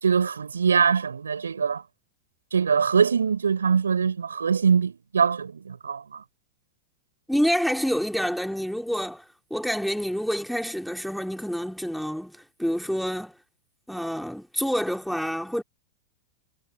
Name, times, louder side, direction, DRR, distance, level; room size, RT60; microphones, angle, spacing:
voice 1, 0.0-1.8 2.5-6.2, right 6 dB, 80° right, 5.8 m, -23 dB
voice 2, 7.3-9.3 9.5-13.3 13.9-15.6, equal, ahead, 3.5 m, -27 dB
figure-of-eight pair, 95°, 0 cm